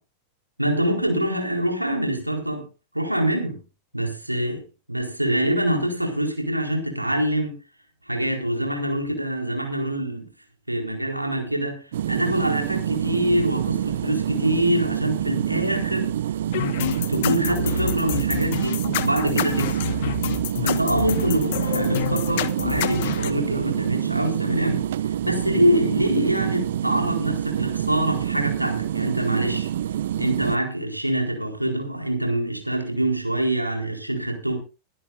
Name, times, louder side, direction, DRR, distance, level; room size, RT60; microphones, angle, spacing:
voice 1, 0.6-2.6 2.9-3.6 3.9-4.6 4.9-7.5 8.1-10.3 10.7-16.2 16.9-19.9 20.6-29.7 30.2-34.6, right 1 dB, 85° right, 4.2 m, -25 dB
sound 1, 11.9-30.6, right 11 dB, 60° right, 0.6 m, -26 dB
sound 2, 16.5-23.3, left 9 dB, 55° left, 1.3 m, -28 dB
22.0 x 12.0 x 2.5 m
figure-of-eight pair, 90°, 0 cm